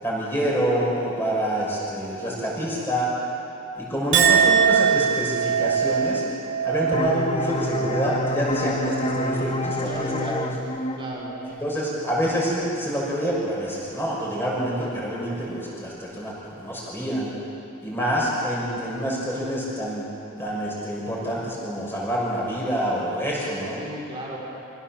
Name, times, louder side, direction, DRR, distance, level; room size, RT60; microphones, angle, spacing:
voice 1, 0.0-3.1 3.7-6.2 6.6-10.4 11.6-16.3 16.6-17.3 17.8-20.0 20.4-23.8, equal, 10° left, -5 dB, 6.1 m, -27 dB
Chink clink, 4.1-10.7 11.1-11.6, right 7 dB, 55° right, 2.9 m, -24 dB
sound 1, 6.9-12.3, left 2 dB, 25° left, 1.0 m, -29 dB
voice 2, 9.7-10.6 10.9-11.3 23.7-24.4, equal, 25° right, -4 dB, 4.5 m, -35 dB
25.5 x 16.5 x 7.4 m, 2.9 s
head